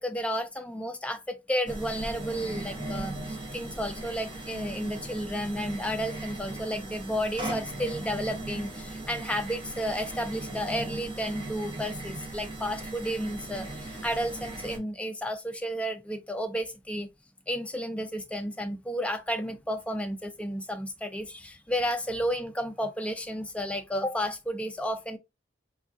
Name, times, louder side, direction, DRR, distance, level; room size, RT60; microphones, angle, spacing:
voice 1, 0.0-17.1 17.5-25.2, equal, 5° left, 0.4 m, -32 dB
sound 1, 1.7-14.8, right 2 dB, 30° right, 0.7 m, -38 dB
3.5 x 2.3 x 2.4 m
head